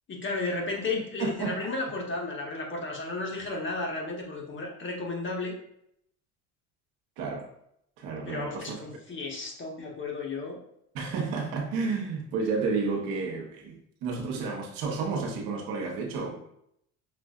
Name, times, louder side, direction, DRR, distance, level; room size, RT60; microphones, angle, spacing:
voice 1, 0.1-5.5 8.3-10.6, left 3 dB, 35° left, 0 dB, 1.1 m, -33 dB
voice 2, 0.9-1.7 7.2-7.5 8.0-8.7 10.9-16.5, right 4 dB, 75° right, 1 dB, 1.0 m, -31 dB
5.8 x 2.5 x 2.4 m, 0.73 s
supercardioid pair, 90°, 35 cm